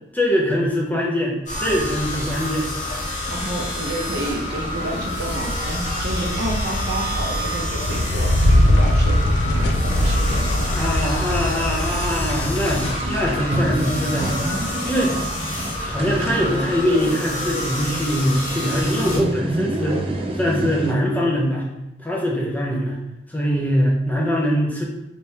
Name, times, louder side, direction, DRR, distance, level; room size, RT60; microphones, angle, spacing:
voice 1, 0.1-2.7 10.7-14.4 14.8-15.2 15.8-21.6 22.0-23.0 23.3-24.8, equal, 10° left, -3 dB, 0.6 m, -22 dB
sound 1, 1.5-19.2, left 1 dB, 40° left, 1.0 m, -28 dB
sound 2, 1.6-1.7 2.1-4.8 5.4-5.5 5.8-6.0 6.4-10.1 10.3-10.4 10.6-10.7 11.3-11.5 11.8-20.9, right 1 dB, 30° right, 0.3 m, -31 dB
voice 2, 3.3-9.2 9.5-10.7, right 1 dB, 60° right, 0 dB, 0.6 m, -30 dB
sound 3, 5.1-15.7, left 1 dB, 75° left, 0.3 m, -22 dB
3.3 x 3.0 x 2.8 m, 0.90 s
head